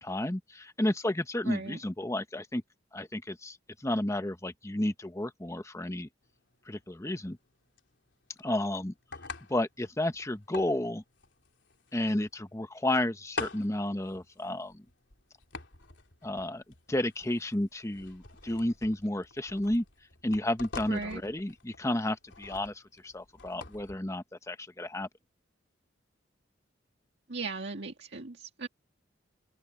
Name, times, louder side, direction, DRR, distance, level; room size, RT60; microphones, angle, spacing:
voice 1, 0.0-2.6 2.9-6.1 6.7-7.4 8.4-8.9 9.5-11.0 11.9-14.8 16.2-16.6 16.9-19.8 20.2-25.1, left 1 dB, 15° left, 1.0 m, -32 dB
voice 2, 1.5-1.8 20.9-21.2 27.3-28.7, right 3 dB, 65° right, 2.0 m, -37 dB
sound 1, 6.2-24.0, left 3 dB, 70° left, 3.3 m, -46 dB
open air
head